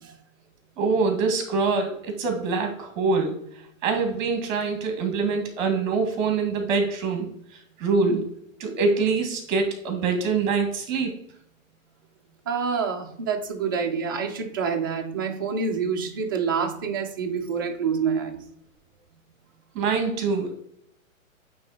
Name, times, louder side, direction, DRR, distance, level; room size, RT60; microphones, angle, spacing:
voice 1, 0.8-3.4 3.8-7.3 7.8-8.3 8.6-11.1 19.7-20.5, right 4 dB, 35° right, 1.9 m, -24 dB
voice 2, 12.5-18.4, right 6 dB, 20° right, 0.4 m, -27 dB
8.7 x 3.5 x 4.2 m
hypercardioid pair, 155°, 41 cm